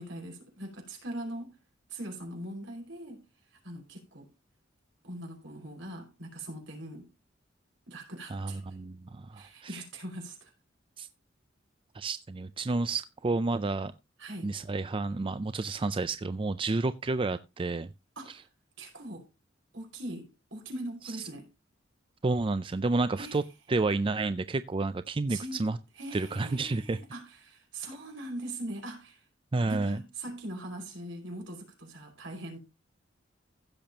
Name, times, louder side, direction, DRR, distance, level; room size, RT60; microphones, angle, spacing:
voice 1, 0.0-1.5 1.9-3.2 3.5-4.3 5.0-7.1 7.9-8.8 9.3-10.5 14.2-14.5 18.1-18.5 18.8-19.3 19.7-21.5 23.2-23.4 25.3-25.7 25.9-29.3 29.6-32.6, right 1 dB, 75° right, 5.0 m, -41 dB
voice 2, 8.3-9.7 11.0-11.1 11.9-13.9 14.4-17.9 22.2-23.4 23.7-25.8 26.1-27.0 29.5-30.0, right 3 dB, 25° right, 0.4 m, -30 dB
15.5 x 6.9 x 2.9 m
head